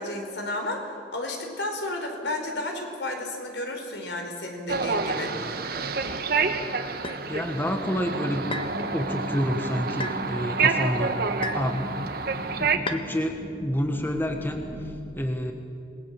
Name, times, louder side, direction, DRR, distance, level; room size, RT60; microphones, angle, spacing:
voice 1, 0.0-5.6, left 1 dB, 70° left, 3 dB, 4.5 m, -32 dB
sound 1, 4.7-12.8, right 4 dB, 55° right, 1.3 m, -28 dB
sound 2, 7.0-7.2 8.5-8.8 10.0-10.2 11.4-11.7 12.9-13.1, left 3 dB, 30° left, 1.5 m, -33 dB
voice 2, 7.3-8.6 8.9-11.1 11.5-12.2 12.6-15.5, equal, 10° left, 4 dB, 1.4 m, -29 dB
sound 3, 7.5-14.9, equal, 85° left, 6.9 m, -39 dB
27.0 x 19.5 x 7.5 m, 2.6 s
head